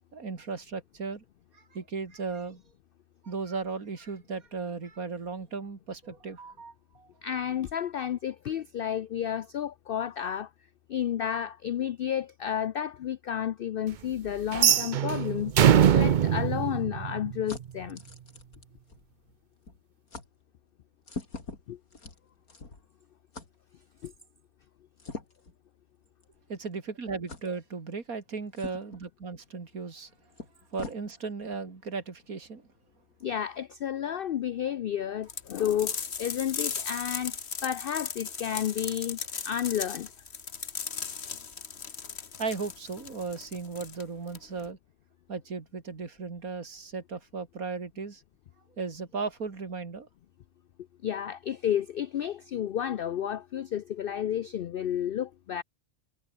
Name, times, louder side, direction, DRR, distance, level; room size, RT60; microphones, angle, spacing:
voice 1, 0.1-1.2 1.5-2.6 3.2-7.1 26.5-30.1 30.7-32.7 42.4-44.8 45.3-48.2 48.8-50.1, right 4 dB, 80° right, 3.0 m, -36 dB
voice 2, 7.2-10.5 10.9-15.5 15.9-18.0 21.7-21.8 24.0-24.1 33.2-39.2 39.4-40.1 51.0-55.6, left 10 dB, 75° left, 0.5 m, -31 dB
sound 1, 14.5-17.6, right 9 dB, 65° right, 0.4 m, -22 dB
sound 2, 16.8-19.4 19.7-19.8 20.1-20.3 21.0-22.9 23.3-23.5 25.0-25.5 26.2-26.4 27.3-27.5 28.5-29.0 30.0-30.1 30.4-31.0, left 3 dB, 90° left, 4.3 m, -43 dB
sound 3, 35.3-44.7, left 6 dB, 50° left, 1.6 m, -37 dB
omnidirectional pair, 1.5 m